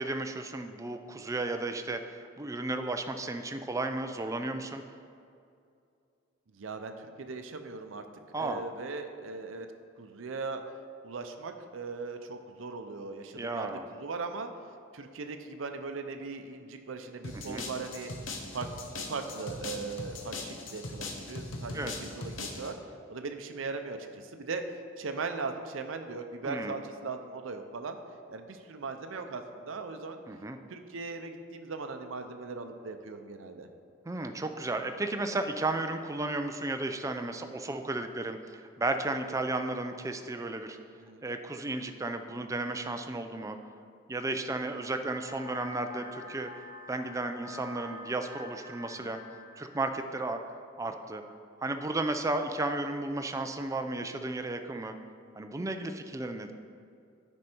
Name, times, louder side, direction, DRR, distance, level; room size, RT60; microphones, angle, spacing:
voice 1, 0.0-4.8 8.3-8.6 13.4-13.9 17.3-17.7 21.7-21.9 26.4-26.7 30.3-30.6 34.1-40.8 41.2-43.6 44.1-46.5 46.9-49.2 49.6-50.4 50.8-51.2 51.6-54.9 55.3-56.5, right 2 dB, 15° right, 6 dB, 0.4 m, -34 dB
voice 2, 6.5-8.0 8.4-9.7 10.0-10.6 11.0-14.5 14.9-18.1 18.5-18.7 19.0-22.8 23.1-24.6 25.0-28.0 28.3-30.2 30.7-33.7 41.0-41.2 48.9-49.1, right 4 dB, 80° right, 6 dB, 0.6 m, -39 dB
sound 1, 17.2-22.7, left 2 dB, 75° left, 0.9 m, -40 dB
sound 2, 45.3-50.3, left 2 dB, 45° left, 0.8 m, -47 dB
9.7 x 5.3 x 4.4 m, 2.5 s
head